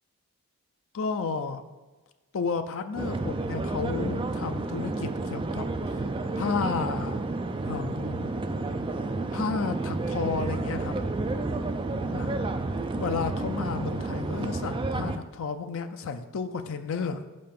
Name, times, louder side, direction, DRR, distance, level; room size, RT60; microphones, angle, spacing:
voice 1, 0.9-1.6 2.3-5.7 6.4-7.2 7.6-8.3 9.3-10.9 12.1-12.4 13.0-17.2, left 5 dB, 65° left, 9 dB, 0.5 m, -32 dB
sound 1, 3.0-15.2, right 2 dB, 20° right, 0.4 m, -30 dB
5.6 x 5.3 x 5.8 m, 1.2 s
head